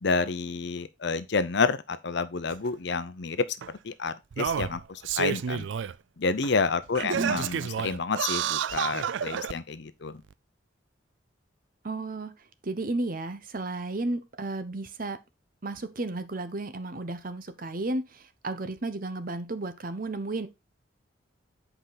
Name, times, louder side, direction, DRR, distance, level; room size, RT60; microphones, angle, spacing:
voice 1, 0.0-3.4 3.8-5.7 6.2-10.2, left 4 dB, 60° left, 0.7 m, -29 dB
Singing, 2.5-2.6 3.6-3.7 4.3-5.9 6.4-6.5 6.9-9.5 10.3-10.4, right 8 dB, 65° right, 0.4 m, -30 dB
voice 2, 7.0-7.4 11.8-12.3 12.6-15.2 15.6-20.5, right 2 dB, 45° right, 0.8 m, -33 dB
7.9 x 5.0 x 4.0 m
head